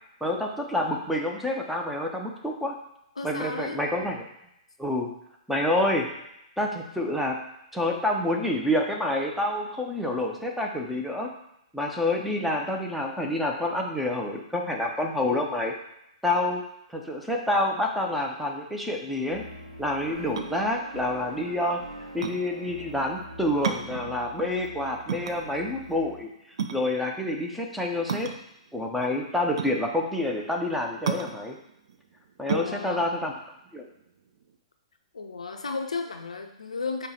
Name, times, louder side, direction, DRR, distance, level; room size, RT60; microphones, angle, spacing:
voice 1, 0.2-2.7 3.2-4.3 4.8-5.1 5.5-6.1 6.6-7.4 7.7-11.3 11.7-15.7 16.2-16.6 16.9-19.4 19.8-21.8 22.1-26.3 26.7-28.3 28.7-31.6 32.4-33.3 33.7-33.9, left 1 dB, ahead, 0 dB, 0.5 m, -28 dB
voice 2, 3.2-3.8 32.5-33.1 35.1-37.1, left 4 dB, 75° left, 5 dB, 0.5 m, -33 dB
sound 1, 19.3-26.2, equal, 85° right, 0.9 m, -44 dB
sound 2, 20.3-34.6, right 7 dB, 60° right, 0.4 m, -35 dB
5.4 x 2.2 x 4.2 m, 0.81 s
figure-of-eight pair, 115°, 3 cm